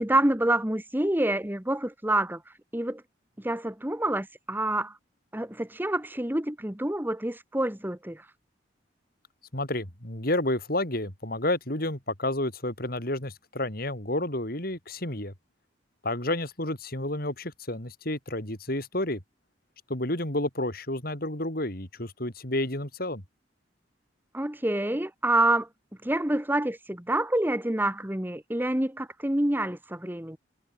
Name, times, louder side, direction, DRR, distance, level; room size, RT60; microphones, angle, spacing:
voice 1, 0.0-2.4 2.7-3.0 3.4-4.9 5.3-8.2 24.3-25.7 26.0-30.4, right 1 dB, 10° right, 1.3 m, -27 dB
voice 2, 9.5-15.3 16.0-19.2 19.9-23.2, left 1 dB, 55° left, 5.8 m, -30 dB
head